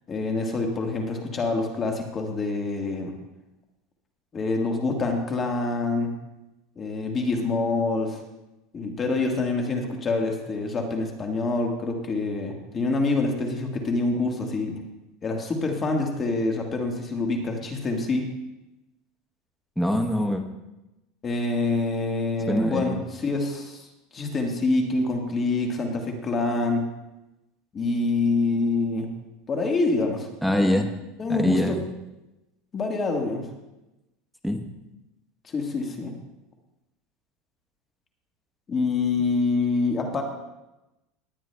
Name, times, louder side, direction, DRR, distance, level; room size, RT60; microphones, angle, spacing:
voice 1, 0.1-3.1 4.3-6.1 6.8-8.2 8.7-14.8 15.2-18.3 21.2-23.9 24.1-26.8 27.7-29.1 29.5-30.8 31.2-31.8 32.7-33.5 35.4-36.2 38.7-40.2, left 3 dB, 25° left, 2 dB, 1.5 m, -26 dB
voice 2, 19.8-20.4 22.5-23.1 30.4-30.9 31.3-31.8 34.4-34.6, left 1 dB, ahead, 4 dB, 1.0 m, -24 dB
19.5 x 9.9 x 2.2 m, 0.97 s
supercardioid pair, 135°, 0 cm